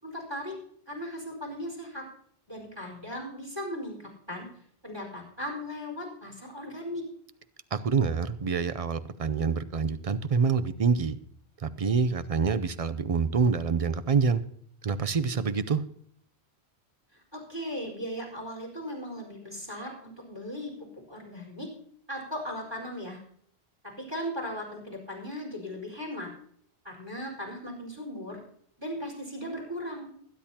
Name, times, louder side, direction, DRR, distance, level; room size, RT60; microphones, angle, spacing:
voice 1, 0.0-0.6 0.9-2.0 2.5-4.5 4.8-7.0 17.3-20.7 21.1-21.7 22.1-23.2 23.8-26.3 26.8-28.4 28.8-30.1, equal, 20° right, 1 dB, 4.7 m, -37 dB
voice 2, 7.7-11.2 11.6-14.4 14.8-15.8, right 5 dB, 45° right, 13 dB, 0.5 m, -26 dB
21.0 x 10.5 x 2.8 m, 0.64 s
omnidirectional pair, 1.1 m